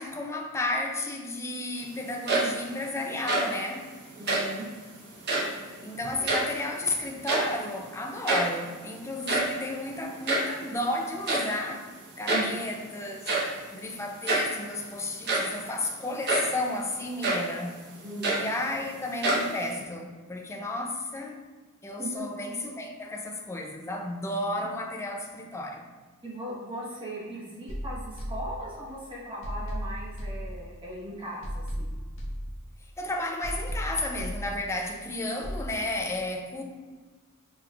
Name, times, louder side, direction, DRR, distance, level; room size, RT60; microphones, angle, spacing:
voice 1, 0.0-4.0 5.8-17.9 18.3-21.4 21.8-25.9 32.8-36.6, left 2 dB, 10° left, 0.4 m, -33 dB
sound 1, 2.1-2.8 3.1-3.6 4.2-4.6 5.2-5.6 6.0-6.8 7.1-7.7 8.0-8.1 8.3-8.6 9.1-10.6 11.3-11.6 12.3-12.6 13.2-13.6 14.3-14.6 15.1-15.6 16.3-16.6 17.2-17.5 18.0-18.8 19.2-19.8, right 2 dB, 50° right, 0.9 m, -27 dB
voice 2, 4.2-4.7 12.3-12.5 18.0-18.2 22.0-22.2 26.2-32.0, right 1 dB, 25° right, 1.2 m, -38 dB
sound 2, 27.7-29.0 29.4-31.0 31.4-33.0 33.4-35.0 35.4-35.7, equal, 60° left, 0.9 m, -36 dB
6.8 x 3.1 x 2.3 m
head